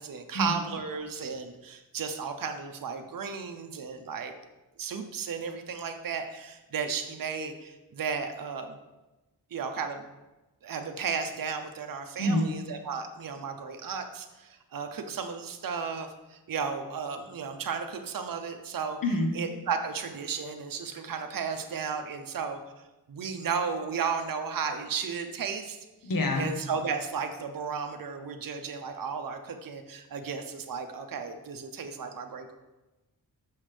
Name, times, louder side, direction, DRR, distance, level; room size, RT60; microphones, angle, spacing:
voice 1, 0.0-4.3 4.8-8.8 9.5-10.0 10.6-19.0 19.3-22.6 23.1-25.8 26.4-32.5, right 6 dB, 60° right, 6 dB, 0.7 m, -34 dB
voice 2, 12.2-12.5 19.0-19.4 26.0-26.5, left 1 dB, 60° left, 3 dB, 1.1 m, -26 dB
6.3 x 5.7 x 3.3 m, 1.1 s
cardioid pair, 55°, 39 cm